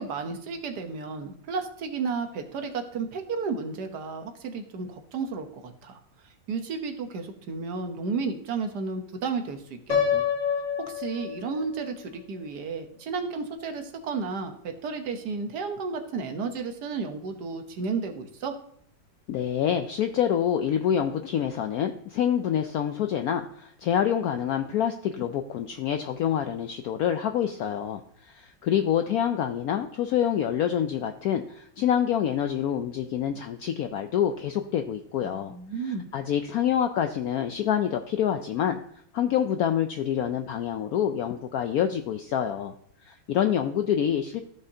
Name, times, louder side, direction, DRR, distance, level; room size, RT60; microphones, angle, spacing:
voice 1, 0.0-6.0 6.5-10.2 10.8-18.5 35.2-36.1, right 4 dB, 60° right, 6 dB, 1.4 m, -33 dB
Piano, 9.9-11.9, left 7 dB, 65° left, 2.4 m, -27 dB
voice 2, 19.3-35.6 35.8-38.8 39.1-42.7 43.0-44.4, left 9 dB, 85° left, 6 dB, 0.8 m, -27 dB
14.0 x 5.4 x 2.7 m, 0.67 s
omnidirectional pair, 2.1 m